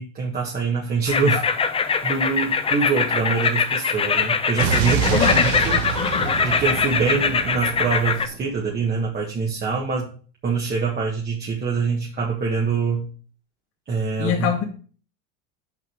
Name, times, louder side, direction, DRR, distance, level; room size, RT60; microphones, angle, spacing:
voice 1, 0.0-1.7 2.0-5.2 5.6-5.8 6.4-10.1 10.4-13.1 13.9-14.5, right 5 dB, 25° right, 1.7 m, -24 dB
sound 1, 1.1-8.3, left 5 dB, 15° left, 0.6 m, -22 dB
Explosion, 4.6-8.6, right 7 dB, 65° right, 1.5 m, -27 dB
voice 2, 5.1-5.5 5.9-6.4 14.2-14.6, left 8 dB, 40° left, 1.6 m, -25 dB
6.0 x 5.4 x 6.2 m
supercardioid pair, 115°, 35 cm